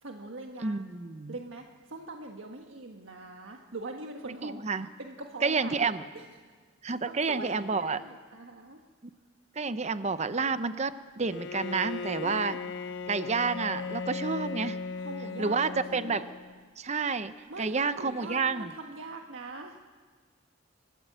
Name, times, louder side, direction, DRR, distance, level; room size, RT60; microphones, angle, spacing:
voice 1, 0.0-0.9 1.3-4.6 5.0-5.9 6.1-6.2 6.8-8.8 12.2-12.7 14.9-16.3 17.5-19.8, right 2 dB, 85° right, 3 dB, 1.5 m, -43 dB
voice 2, 0.6-1.3 4.4-4.9 5.4-6.0 6.8-8.0 9.6-12.6 13.1-14.8 15.4-16.3 16.8-18.7, right 4 dB, 35° right, 13 dB, 0.7 m, -29 dB
Bowed string instrument, 11.2-16.7, left 5 dB, 65° left, 0.6 m, -37 dB
29.5 x 13.5 x 8.0 m, 1.5 s
head